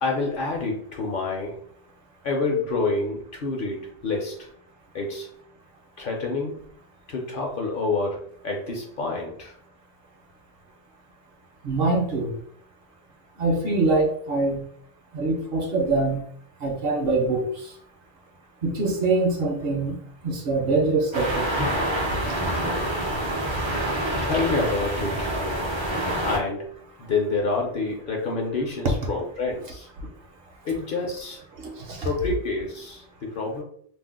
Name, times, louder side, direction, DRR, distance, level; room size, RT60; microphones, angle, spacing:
voice 1, 0.0-1.6 2.2-4.4 4.9-5.3 6.0-6.6 7.1-9.5 24.2-25.4 26.2-26.7 27.0-29.9 30.6-31.4 32.0-33.6, left 3 dB, 55° left, 0 dB, 0.7 m, -28 dB
voice 2, 11.6-12.3 13.4-14.6 15.1-16.2 16.6-17.5 18.6-20.0 20.2-21.5 28.8-28.9 31.7-32.1, right 3 dB, 60° right, 2 dB, 0.7 m, -23 dB
sound 1, 21.1-26.4, right 1 dB, 45° right, 0.3 m, -26 dB
2.6 x 2.0 x 3.5 m, 0.63 s
omnidirectional pair, 1.2 m